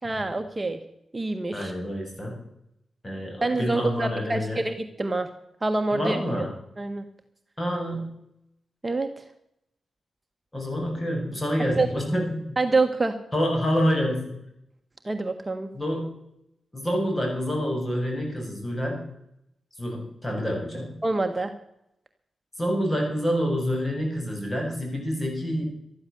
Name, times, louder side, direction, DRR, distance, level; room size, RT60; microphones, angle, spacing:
voice 1, 0.0-0.8 1.1-1.7 3.4-5.3 5.6-6.2 6.8-7.0 8.8-9.2 11.7-11.9 12.6-13.1 15.0-15.7 21.0-21.5, right 3 dB, 30° right, 6 dB, 1.5 m, -26 dB
voice 2, 1.5-2.4 3.0-4.6 5.9-6.5 7.6-8.1 10.5-12.6 13.3-14.4 15.7-16.2 16.7-19.0 19.8-21.0 22.6-25.7, equal, 25° left, 1 dB, 7.6 m, -27 dB
13.5 x 11.0 x 7.0 m, 0.78 s
supercardioid pair, 45°, 0 cm